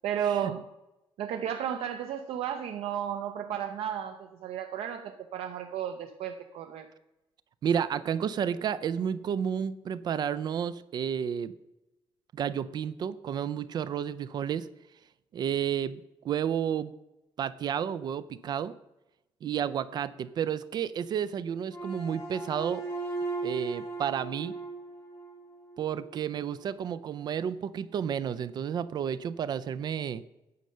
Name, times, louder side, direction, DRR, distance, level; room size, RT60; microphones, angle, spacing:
voice 1, 0.0-0.7 1.2-6.9, right 9 dB, 90° right, 6 dB, 0.6 m, -33 dB
voice 2, 7.6-11.5 12.3-14.7 15.3-16.0 16.2-16.9 17.4-18.7 19.4-22.8 23.4-24.5 25.8-30.2, right 8 dB, 45° right, 16 dB, 0.4 m, -31 dB
sound 1, 21.7-26.0, right 3 dB, 25° left, 2.4 m, -37 dB
9.4 x 5.5 x 6.5 m, 0.94 s
cardioid pair, 175°, 10 cm